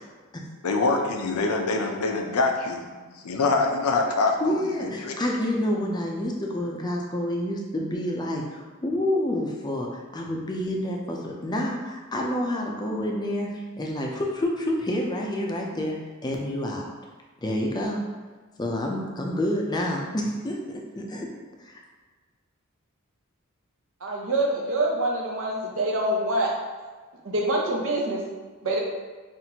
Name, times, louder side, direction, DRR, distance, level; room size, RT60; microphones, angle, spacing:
voice 1, 0.6-5.2, left 3 dB, 85° left, 3 dB, 0.5 m, -25 dB
voice 2, 4.4-16.9 17.4-18.0 18.6-21.3 21.6-21.8, left 1 dB, 20° left, 0 dB, 0.4 m, -28 dB
voice 3, 24.0-26.5 26.8-26.9 27.2-28.2 28.6-28.8, right 1 dB, 65° right, -1 dB, 0.6 m, -25 dB
5.8 x 2.5 x 2.8 m, 1.4 s
head